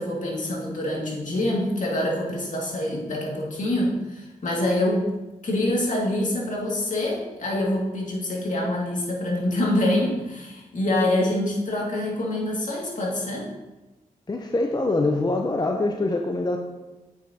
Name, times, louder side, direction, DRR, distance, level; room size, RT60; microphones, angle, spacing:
voice 1, 0.0-5.1 5.4-13.5, left 1 dB, 55° left, -3 dB, 2.1 m, -25 dB
voice 2, 14.3-16.6, left 2 dB, 25° left, 4 dB, 0.6 m, -24 dB
8.0 x 6.1 x 2.8 m, 1.1 s
cardioid pair, 45°, 15 cm